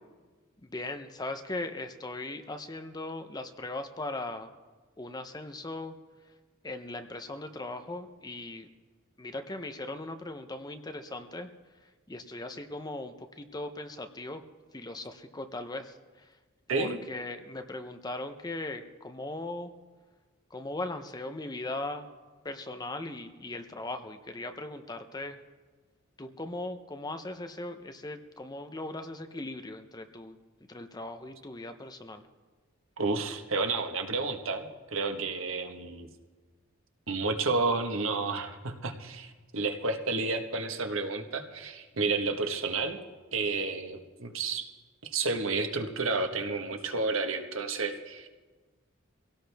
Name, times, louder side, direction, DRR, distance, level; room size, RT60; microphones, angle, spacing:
voice 1, 0.6-4.6 5.0-5.9 6.6-8.7 9.2-11.5 11.8-14.4 14.7-16.4 16.7-19.7 20.5-22.1 22.4-25.4 26.2-30.4 30.7-32.2, left 2 dB, 20° left, 7 dB, 0.7 m, -39 dB
voice 2, 33.0-36.1 37.1-43.0 43.3-44.7 45.0-48.3, right 3 dB, 80° right, 5 dB, 1.3 m, -31 dB
24.0 x 17.0 x 3.5 m, 1.4 s
head